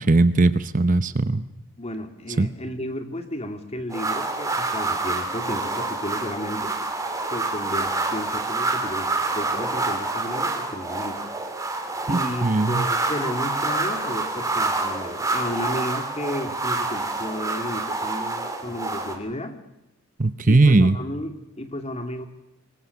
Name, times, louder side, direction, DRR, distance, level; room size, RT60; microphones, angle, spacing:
voice 1, 0.0-1.4 2.4-2.5 12.4-12.9 20.2-21.0, right 2 dB, 35° right, 13 dB, 0.8 m, -18 dB
voice 2, 1.8-6.7 7.3-11.3 12.1-19.6 20.5-22.3, left 1 dB, 30° left, 6 dB, 2.5 m, -33 dB
sound 1, 3.9-19.2, right 3 dB, 15° right, 3.0 m, -27 dB
25.5 x 23.0 x 6.9 m, 0.93 s
head